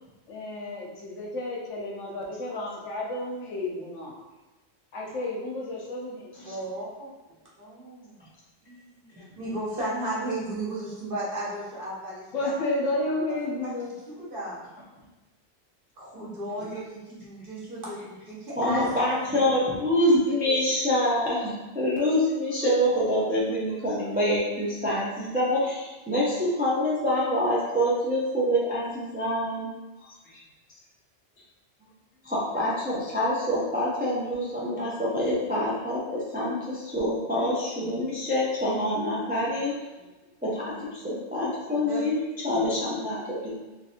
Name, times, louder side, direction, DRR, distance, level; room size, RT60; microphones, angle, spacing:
voice 1, 0.3-4.1 4.9-6.3 12.3-13.9, left 2 dB, 80° left, -3 dB, 1.2 m, -31 dB
voice 2, 6.4-7.1 7.6-8.2 8.6-12.9 13.6-13.7 14.1-14.7 16.0-18.9 19.2-19.8 41.9-42.1, right 1 dB, 50° right, -7 dB, 1.1 m, -35 dB
voice 3, 18.6-29.7 30.0-30.4 32.2-39.7 40.4-42.2 42.4-43.7, left 1 dB, 10° right, -7 dB, 0.4 m, -26 dB
3.3 x 3.1 x 2.7 m, 1.2 s
omnidirectional pair, 1.2 m